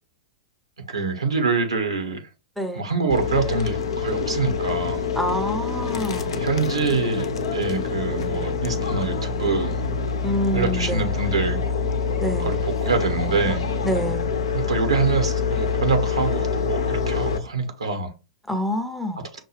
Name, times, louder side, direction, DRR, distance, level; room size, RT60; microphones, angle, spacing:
voice 1, 0.9-2.2 2.7-5.0 6.3-7.2 7.5-9.8 10.5-11.6 12.4-13.6 14.5-18.1, right 4 dB, 75° right, 1.1 m, -25 dB
voice 2, 2.6-2.9 5.2-6.4 10.2-11.1 12.2-12.6 13.8-14.2 18.5-19.2, equal, ahead, 0.7 m, -27 dB
sound 1, 3.1-17.4, left 5 dB, 65° left, 0.6 m, -26 dB
5.8 x 2.2 x 3.2 m
figure-of-eight pair, 95°, 3 cm